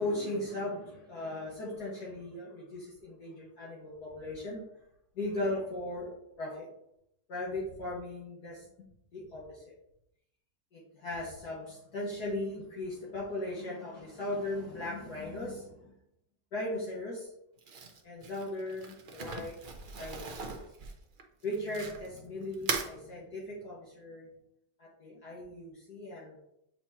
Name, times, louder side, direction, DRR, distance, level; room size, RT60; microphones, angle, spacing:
voice 1, 0.0-4.6 5.2-6.7 7.3-8.7 9.1-9.7 10.7-15.9 16.5-17.3 18.0-19.5 20.0-20.5 21.4-24.3 24.8-26.4, left 1 dB, 60° left, -6 dB, 2.0 m, -38 dB
Crumpling crinkling, 17.6-22.2 22.5-22.9, right 4 dB, 80° right, 0.4 m, -39 dB
7.8 x 4.3 x 2.8 m, 0.79 s
omnidirectional pair, 1.9 m